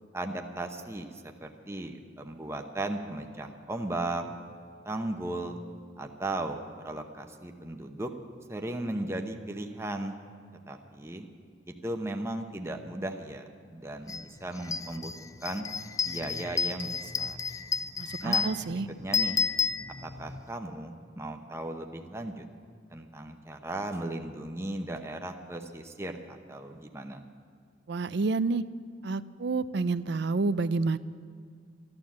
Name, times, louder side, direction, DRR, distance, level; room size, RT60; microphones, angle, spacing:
voice 1, 0.1-1.1 1.4-4.2 4.8-5.6 6.0-8.1 8.5-10.1 10.7-11.3 11.7-15.1 15.4-15.7 16.0-17.4 18.2-18.5 19.0-19.4 20.0-22.4 22.9-27.2, right 1 dB, 15° right, 4 dB, 0.8 m, -36 dB
sound 1, 14.1-14.2 14.6-20.4, left 5 dB, 20° left, 0.3 m, -31 dB
voice 2, 18.0-18.9 27.9-28.6 29.0-31.0, right 3 dB, 65° right, 15 dB, 0.5 m, -29 dB
14.0 x 11.5 x 7.3 m, 2.2 s
head